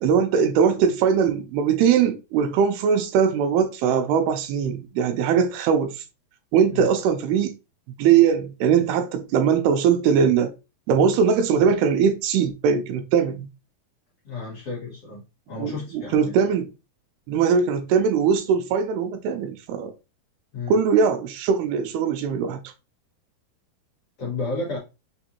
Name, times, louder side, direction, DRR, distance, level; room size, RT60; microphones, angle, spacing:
voice 1, 0.0-6.0 6.5-7.5 8.0-10.5 10.9-13.5 15.6-16.7 17.3-19.9 20.7-22.6, right 7 dB, 85° right, 2.5 m, -21 dB
voice 2, 14.2-15.2 15.5-16.4 20.5-20.8 24.2-24.8, left 3 dB, 50° left, 2.0 m, -32 dB
5.8 x 2.6 x 2.8 m
omnidirectional pair, 4.5 m